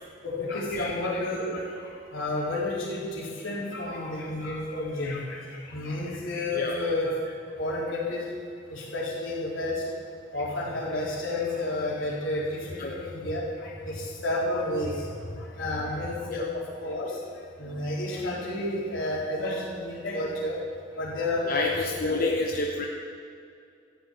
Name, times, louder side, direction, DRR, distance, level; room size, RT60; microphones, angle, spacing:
voice 1, 0.2-7.2 7.6-8.3 8.7-9.9 10.3-20.6 20.9-21.7 22.0-22.6, left 2 dB, 75° left, -5 dB, 3.9 m, -31 dB
voice 2, 6.5-6.9 12.8-12.9 16.3-16.4 21.5-22.9, left 2 dB, 45° left, 0 dB, 0.9 m, -29 dB
13.5 x 6.9 x 9.2 m, 2.3 s
head